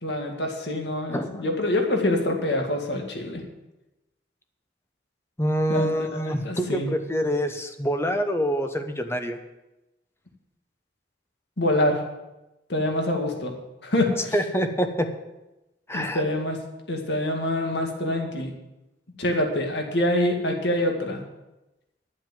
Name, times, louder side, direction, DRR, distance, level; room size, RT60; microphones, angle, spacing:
voice 1, 0.0-3.4 5.7-6.9 11.6-12.0 12.7-13.5 13.8-14.3 15.9-16.6 16.9-18.5 19.2-21.2, left 1 dB, 70° left, 3 dB, 2.0 m, -25 dB
voice 2, 5.4-9.4 14.3-15.1 15.9-16.2, equal, 15° left, 6 dB, 0.9 m, -26 dB
11.5 x 7.5 x 7.5 m, 0.98 s
head